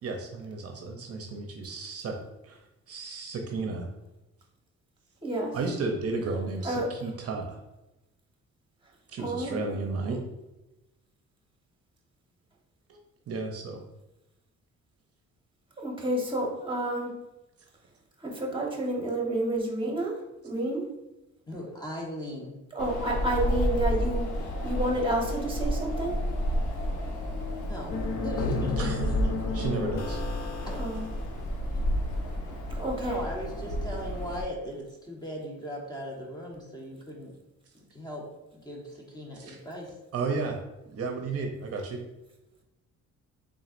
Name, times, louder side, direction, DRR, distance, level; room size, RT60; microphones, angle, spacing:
voice 1, 0.0-2.2 2.4-2.6 2.9-3.9 5.5-7.6 9.1-10.2 13.3-13.8 28.8-29.0 29.5-30.2 39.3-39.6 40.1-40.6 40.9-42.0, right 3 dB, 50° right, 2 dB, 0.6 m, -33 dB
voice 2, 5.2-5.5 6.6-6.9 9.2-9.8 15.8-17.1 18.2-20.2 20.4-20.8 22.7-24.3 24.6-26.1 30.7-31.0 32.8-33.2, right 1 dB, 15° right, -1 dB, 1.2 m, -29 dB
voice 3, 21.5-22.6 27.7-29.3 33.0-37.3 37.9-38.2 38.5-39.9, equal, 15° left, -2 dB, 1.1 m, -38 dB
Wind, 22.8-34.4, equal, 80° left, 0.9 m, -31 dB
sound 1, 27.9-31.2, left 3 dB, 60° left, 0.7 m, -32 dB
3.9 x 3.7 x 2.5 m, 0.98 s
cardioid pair, 90°, 30 cm